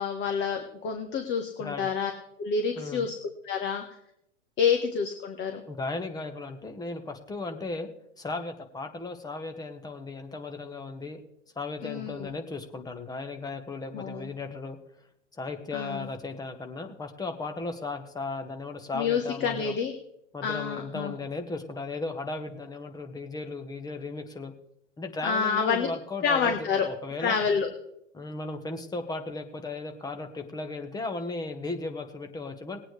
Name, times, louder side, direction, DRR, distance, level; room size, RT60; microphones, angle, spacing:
voice 1, 0.0-2.1 2.4-3.1 3.4-3.8 4.6-5.6 11.8-12.3 13.9-14.3 15.7-16.1 18.9-19.9 20.4-21.1 25.2-25.9 26.2-26.9 27.2-27.7, left 6 dB, 30° left, 6 dB, 1.3 m, -28 dB
voice 2, 1.6-1.9 2.7-3.1 5.7-7.9 8.2-11.2 11.5-14.8 15.3-19.7 20.3-24.5 25.0-27.4 28.1-32.8, left 3 dB, 10° left, 6 dB, 1.2 m, -36 dB
19.5 x 8.9 x 3.3 m, 0.77 s
hypercardioid pair, 110°, 38 cm